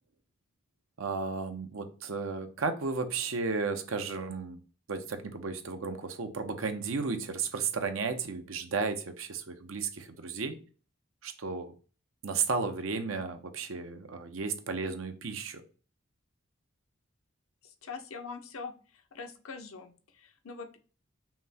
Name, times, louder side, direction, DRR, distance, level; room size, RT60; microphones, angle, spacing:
voice 1, 1.0-4.6 4.9-10.6 11.2-11.7 12.2-15.6, right 4 dB, 75° right, 7 dB, 0.7 m, -34 dB
voice 2, 17.6-18.7 19.1-20.8, left 4 dB, 85° left, 6 dB, 0.7 m, -43 dB
5.7 x 2.2 x 4.1 m, 0.38 s
head